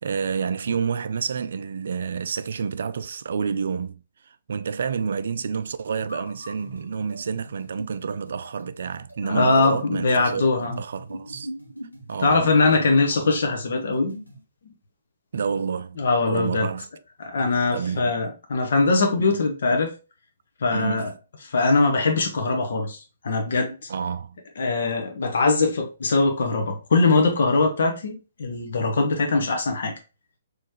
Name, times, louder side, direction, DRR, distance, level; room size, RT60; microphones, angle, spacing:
voice 1, 0.0-4.0 4.5-11.5 12.1-12.5 15.3-16.9 17.7-18.2 19.2-19.4 20.7-21.1 23.9-24.4, right 6 dB, 55° right, 0.4 m, -29 dB
sound 1, 5.9-14.4, right 1 dB, 85° left, 1.5 m, -41 dB
voice 2, 9.2-10.8 12.2-14.1 16.0-16.7 17.2-19.9 20.6-21.1 21.4-23.7 24.6-29.9, left 3 dB, 55° left, 1.1 m, -22 dB
4.3 x 3.2 x 3.0 m
figure-of-eight pair, 125°, 0 cm